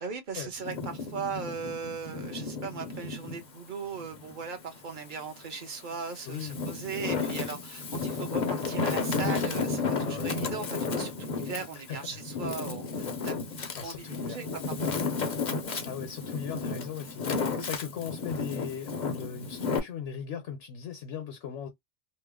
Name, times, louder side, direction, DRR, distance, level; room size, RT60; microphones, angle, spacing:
voice 1, 0.0-15.0, right 5 dB, 45° right, 0.9 m, -38 dB
Wind, 0.6-3.4 3.9-5.2 5.8-19.8, left 4 dB, 45° left, 0.7 m, -33 dB
voice 2, 6.2-6.6 10.0-10.3 11.9-12.2 13.8-14.4 15.8-21.7, left 8 dB, 70° left, 1.0 m, -38 dB
3.0 x 2.1 x 3.5 m
omnidirectional pair, 1.3 m